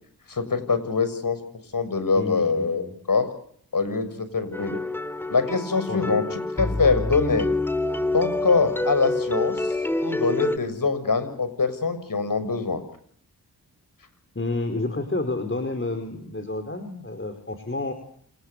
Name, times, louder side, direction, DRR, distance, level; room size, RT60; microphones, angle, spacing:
voice 1, 0.3-1.4 1.7-3.3 3.7-4.8 5.3-7.5 8.1-12.8, left 4 dB, 55° left, 12 dB, 6.8 m, -24 dB
voice 2, 2.2-3.0 5.9-6.2 6.7-6.8 14.3-17.9, left 2 dB, 30° left, 6 dB, 5.1 m, -30 dB
sound 1, 4.5-10.6, left 2 dB, 5° left, 3.3 m, -27 dB
27.5 x 20.0 x 8.3 m, 0.64 s
cardioid pair, 50°, 40 cm